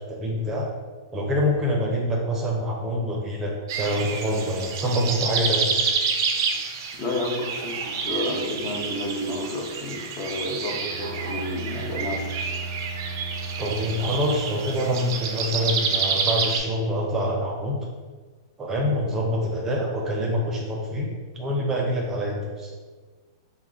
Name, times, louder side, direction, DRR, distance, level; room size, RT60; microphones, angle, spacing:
voice 1, 0.1-0.7 1.1-5.7 13.6-17.8 18.6-21.1 21.3-22.7, equal, 20° right, -1 dB, 0.6 m, -26 dB
sound 1, 3.7-16.6, right 5 dB, 60° right, 0.4 m, -29 dB
voice 2, 6.9-12.2, left 1 dB, 35° left, -1 dB, 0.8 m, -30 dB
Bowed string instrument, 10.9-14.8, right 3 dB, 20° left, 1.3 m, -36 dB
3.5 x 2.1 x 3.5 m, 1.4 s
hypercardioid pair, 125°, 2 cm